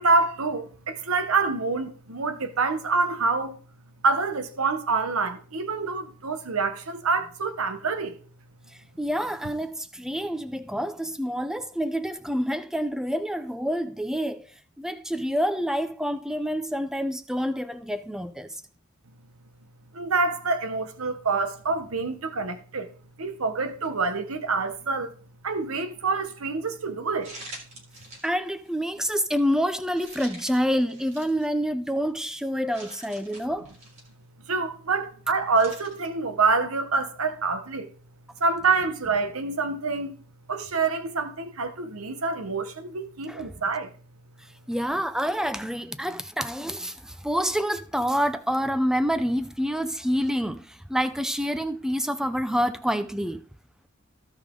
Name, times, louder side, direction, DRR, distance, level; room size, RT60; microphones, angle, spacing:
voice 1, 0.0-3.6 4.0-8.2 19.9-22.9 23.2-25.1 25.4-27.4 34.5-37.9 38.4-40.2 40.5-43.9, right 4 dB, 90° right, 1.1 m, -26 dB
voice 2, 8.7-14.5 14.8-18.6 28.2-33.7 43.3-43.5 44.7-53.4, equal, 5° right, 0.6 m, -27 dB
sound 1, 23.8-24.1 24.7-24.8 27.2-28.3 28.6-28.8 30.0-31.5 32.0-32.1 32.7-34.1 35.5-36.1, right 2 dB, 35° right, 3.7 m, -45 dB
16.5 x 5.5 x 3.8 m
head